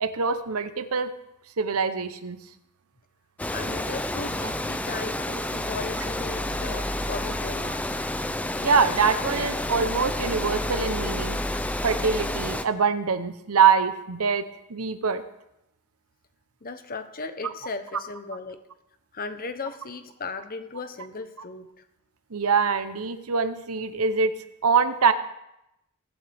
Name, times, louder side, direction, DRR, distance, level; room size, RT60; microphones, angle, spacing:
voice 1, 0.0-1.1 1.6-2.4 4.4-4.5 6.5-6.6 7.7-7.8 8.6-11.4 11.8-15.2 22.3-24.3 24.6-25.1, right 5 dB, 80° right, 11 dB, 0.8 m, -24 dB
Water, 3.4-12.6, left 1 dB, 5° left, 0.4 m, -30 dB
voice 2, 3.5-7.8 16.6-18.6 19.1-21.8, left 4 dB, 40° left, 9 dB, 0.9 m, -36 dB
22.5 x 8.1 x 3.5 m, 0.86 s
head